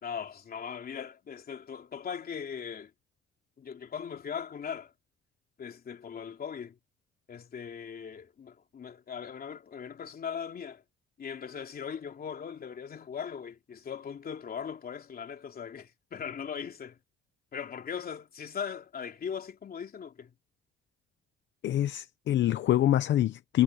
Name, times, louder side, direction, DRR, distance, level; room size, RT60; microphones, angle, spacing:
voice 1, 0.0-2.9 3.6-4.9 5.6-6.8 7.3-10.8 11.2-17.0 17.5-20.3, left 7 dB, 50° left, 3.0 m, -39 dB
voice 2, 21.6-23.6, left 12 dB, 70° left, 0.8 m, -25 dB
cardioid pair, 90°, 20 cm